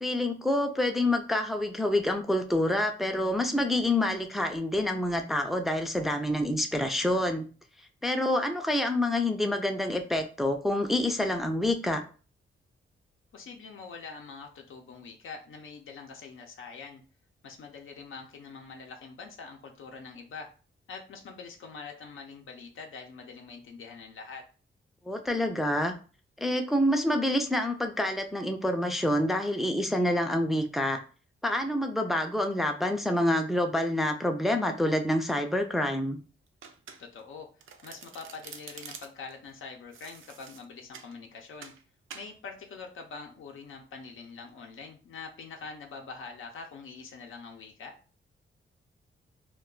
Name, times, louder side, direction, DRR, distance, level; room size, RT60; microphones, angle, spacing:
voice 1, 0.0-7.4 8.0-12.0 25.1-25.9 26.4-31.0 31.4-36.2, left 1 dB, ahead, 4 dB, 0.3 m, -27 dB
voice 2, 13.3-17.0 17.4-20.5 20.9-24.4 37.0-37.5 37.8-41.7 42.1-47.9, left 4 dB, 80° left, 2 dB, 0.6 m, -44 dB
Domestic sounds home sounds, 36.6-37.3 37.6-39.3 39.9-41.1 41.6-41.8 42.1-42.3, right 6 dB, 75° right, 0.4 m, -47 dB
2.3 x 2.2 x 3.7 m, 0.37 s
wide cardioid pair, 120°, 21 cm